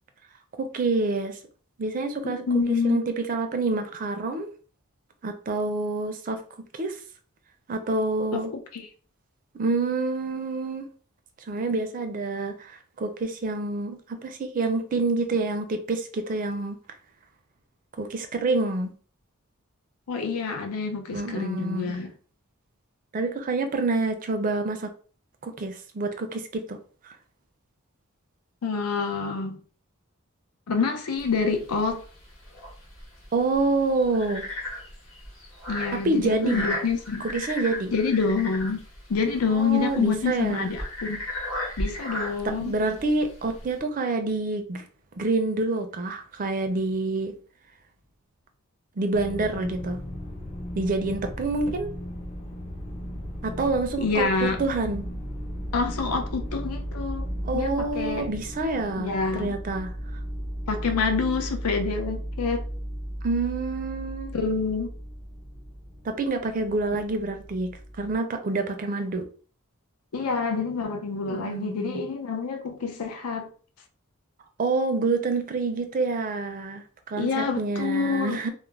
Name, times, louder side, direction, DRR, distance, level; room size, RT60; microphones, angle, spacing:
voice 1, 0.6-1.4 1.8-4.5 5.2-6.4 6.8-7.0 7.7-8.5 9.5-10.9 11.5-16.8 18.0-18.9 21.1-22.0 23.1-24.9 25.4-26.8 27.0-27.1 33.3-34.4 35.9-36.7 37.2-37.9 39.5-40.7 42.6-44.9 45.2-47.3 49.0-50.0 50.7-51.9 53.4-55.0 57.4-59.9 63.2-64.4 66.0-69.3 71.3-72.0 74.6-78.5, right 3 dB, 40° right, 0.4 m, -27 dB
voice 2, 2.2-3.0 8.3-8.4 8.7-8.9 20.1-22.1 28.6-29.6 30.7-32.0 35.7-37.3 37.9-38.8 39.1-41.2 41.8-42.8 54.0-54.6 55.7-58.3 59.0-59.6 60.7-62.7 64.3-64.9 70.1-73.5 77.2-78.4, left 4 dB, 90° left, 0.5 m, -27 dB
sound 1, 31.2-43.8, left 1 dB, 60° left, 1.0 m, -36 dB
sound 2, 49.1-68.1, equal, 30° left, 0.4 m, -36 dB
2.3 x 2.1 x 3.2 m
head